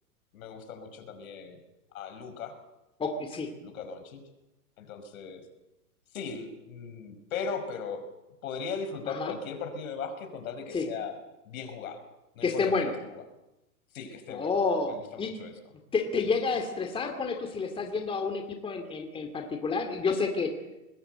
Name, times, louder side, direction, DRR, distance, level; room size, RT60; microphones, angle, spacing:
voice 1, 0.3-1.6 1.9-2.6 3.6-4.2 4.8-5.4 6.1-8.1 8.4-11.2 11.5-12.0 12.3-13.2 13.9-14.5 14.9-15.5, left 5 dB, 65° left, 8 dB, 5.3 m, -38 dB
voice 2, 3.0-3.5 9.1-9.3 10.7-10.9 12.4-12.9 14.3-15.3 15.9-20.5, left 4 dB, 10° left, 5 dB, 2.4 m, -29 dB
24.5 x 20.5 x 7.9 m, 1.0 s
hypercardioid pair, 135°, 45 cm